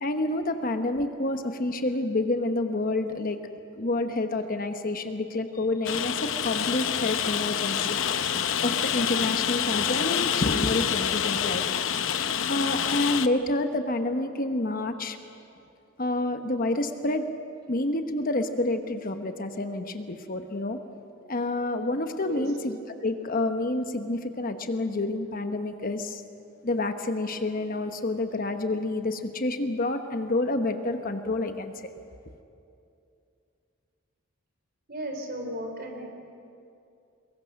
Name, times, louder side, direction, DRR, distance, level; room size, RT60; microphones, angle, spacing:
voice 1, 0.0-3.4 3.7-8.0 8.6-15.2 16.0-17.2 17.7-20.8 21.3-26.2 26.6-31.9, left 2 dB, 40° left, 7 dB, 1.0 m, -28 dB
Rain, 5.9-13.3, left 8 dB, 65° left, 0.7 m, -27 dB
voice 2, 34.9-36.1, equal, 45° right, 3 dB, 3.6 m, -35 dB
23.5 x 22.0 x 6.5 m, 2.6 s
head